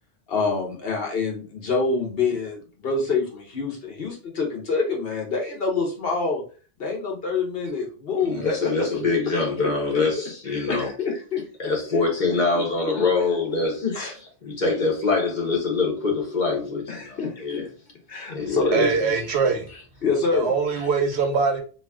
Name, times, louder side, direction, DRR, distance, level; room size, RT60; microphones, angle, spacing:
voice 1, 0.3-6.4 6.8-9.1 9.6-10.0 10.5-11.4 13.8-14.1 16.9-17.6 18.1-18.8 20.0-20.5, left 4 dB, 65° left, 1.3 m, -26 dB
voice 2, 8.2-10.9 11.6-13.8 14.4-17.7 18.3-19.2 20.8-20.9, left 3 dB, 45° left, 1.2 m, -24 dB
voice 3, 18.7-19.7 20.3-21.6, right 5 dB, 80° right, 1.0 m, -22 dB
2.8 x 2.8 x 3.5 m
omnidirectional pair, 1.1 m